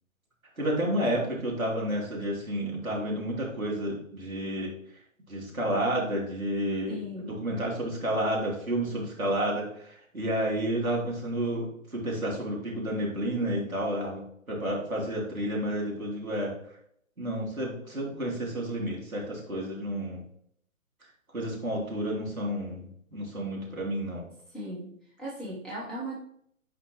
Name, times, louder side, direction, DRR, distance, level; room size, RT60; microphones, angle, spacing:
voice 1, 0.6-4.7 5.3-11.7 11.9-14.2 14.5-16.5 17.2-20.2 21.3-24.3, right 1 dB, 85° right, -4 dB, 3.1 m, -30 dB
voice 2, 6.9-7.4 24.5-26.2, right 1 dB, ahead, -8 dB, 1.1 m, -38 dB
10.0 x 4.4 x 3.0 m, 0.66 s
figure-of-eight pair, 135°, 41 cm